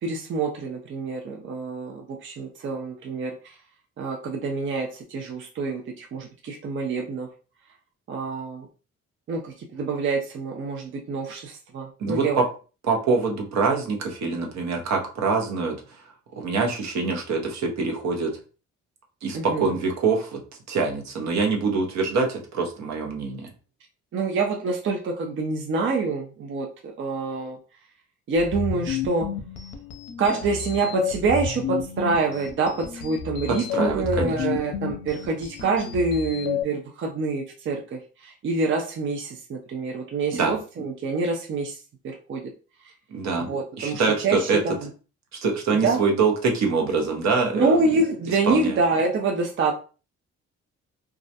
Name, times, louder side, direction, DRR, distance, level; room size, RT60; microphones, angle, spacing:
voice 1, 0.0-3.6 4.0-7.3 8.1-8.7 9.3-12.4 19.3-19.7 24.1-27.6 28.3-29.3 30.2-42.5 42.8-42.9 43.5-44.9 45.7-46.0 47.5-49.7, right 3 dB, 40° right, 1 dB, 0.5 m, -26 dB
voice 2, 12.0-12.4 12.8-15.8 16.3-18.3 19.2-20.4 20.7-23.5 33.5-34.3 40.3-40.5 43.1-43.5 43.8-44.6 45.4-47.9 48.4-48.8, right 4 dB, 65° right, 2 dB, 0.8 m, -24 dB
sound 1, 28.4-36.6, left 8 dB, 60° left, 0.6 m, -31 dB
2.3 x 2.1 x 2.7 m, 0.36 s
cardioid pair, 90°, 30 cm